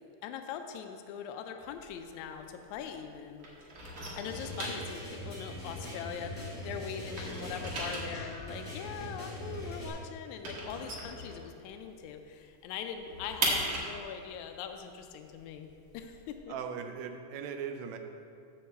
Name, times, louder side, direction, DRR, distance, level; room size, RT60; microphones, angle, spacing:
voice 1, 0.2-3.5 4.2-15.7 15.9-16.5, left 7 dB, 80° left, 5 dB, 1.8 m, -42 dB
sound 1, 1.7-3.1 3.4-6.6 6.9-11.9 12.2-12.3 12.6-16.4, right 2 dB, 55° right, 1.7 m, -38 dB
sound 2, 4.2-9.9, left 1 dB, 20° left, 0.9 m, -42 dB
voice 2, 16.5-18.0, right 7 dB, 75° right, 5 dB, 1.7 m, -39 dB
7.8 x 4.4 x 6.8 m, 2.4 s
omnidirectional pair, 3.7 m